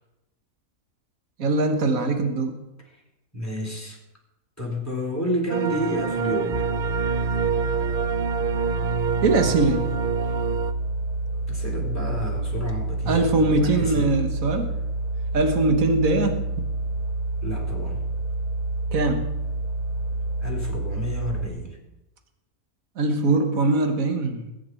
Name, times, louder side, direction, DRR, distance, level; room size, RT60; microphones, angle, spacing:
voice 1, 1.4-2.6 9.2-9.8 13.1-14.7 15.3-16.4 18.9-19.4 23.0-24.5, right 2 dB, 70° right, 5 dB, 1.8 m, -22 dB
voice 2, 3.3-4.0 4.6-6.6 11.5-14.1 17.4-18.0 20.4-21.8, equal, 10° left, -1 dB, 3.4 m, -30 dB
sound 1, 5.5-10.7, right 7 dB, 90° right, 0.4 m, -27 dB
sound 2, 6.5-21.5, right 2 dB, 25° right, 2.2 m, -28 dB
20.5 x 9.3 x 4.5 m, 0.94 s
omnidirectional pair, 1.5 m